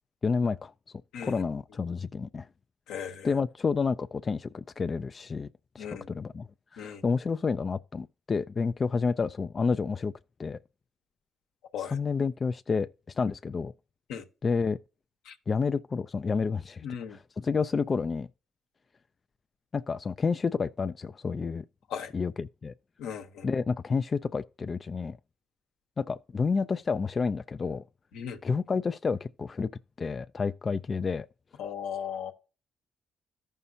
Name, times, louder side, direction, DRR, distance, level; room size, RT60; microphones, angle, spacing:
voice 1, 0.2-0.7 1.2-2.5 3.2-5.5 5.7-10.1 10.4-10.6 11.8-13.7 14.4-14.8 15.5-16.9 17.1-18.3 19.7-21.6 22.1-22.7 23.4-25.2 26.0-27.8 28.4-29.7 30.0-31.3, left 5 dB, 40° left, 0.3 m, -29 dB
voice 2, 2.9-3.3 5.8-6.1 6.8-7.0 11.7-12.0 14.1-14.2 15.2-15.3 16.8-17.2 21.9-22.1 23.0-23.5 28.1-28.4 31.6-32.3, left 8 dB, 80° left, 1.0 m, -37 dB
14.0 x 5.6 x 2.7 m
supercardioid pair, 60°, 0 cm